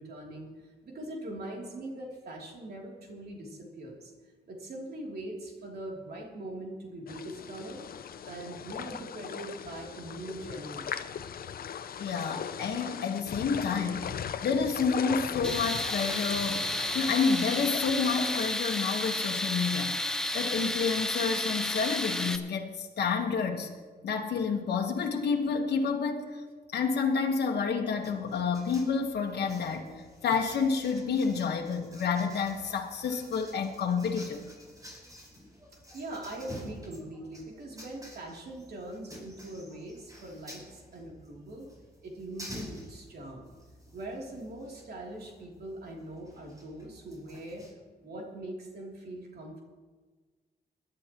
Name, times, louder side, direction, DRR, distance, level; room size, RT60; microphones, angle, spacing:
voice 1, 0.0-4.1 4.5-7.9 8.2-11.1 34.0-34.1 35.9-41.7 42.0-43.5 43.9-47.7 48.0-49.6, right 1 dB, 70° right, -1 dB, 3.0 m, -42 dB
sound 1, 7.1-18.5, left 8 dB, 65° left, 0.6 m, -39 dB
voice 2, 12.0-14.2 14.4-16.7 16.9-20.0 20.3-23.7 24.0-26.4 26.7-34.4, left 5 dB, 85° left, 1 dB, 1.3 m, -29 dB
Tools, 15.4-22.4, left 1 dB, 5° left, 1.0 m, -32 dB
sound 2, 28.0-47.7, equal, 20° right, 5.2 m, -50 dB
22.5 x 11.5 x 3.0 m, 1.4 s
cardioid pair, 100°, 17 cm